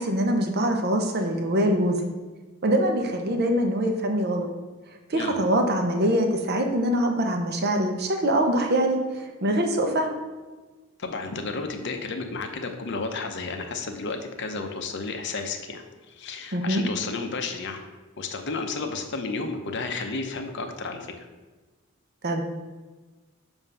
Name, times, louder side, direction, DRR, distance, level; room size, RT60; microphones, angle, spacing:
voice 1, 0.0-2.0 2.6-4.5 5.1-10.1 16.5-16.8 22.2-22.4, right 1 dB, 50° right, 4 dB, 0.7 m, -24 dB
voice 2, 11.0-17.8 18.2-21.3, left 4 dB, 55° left, 5 dB, 0.7 m, -32 dB
7.2 x 2.6 x 5.5 m, 1.3 s
head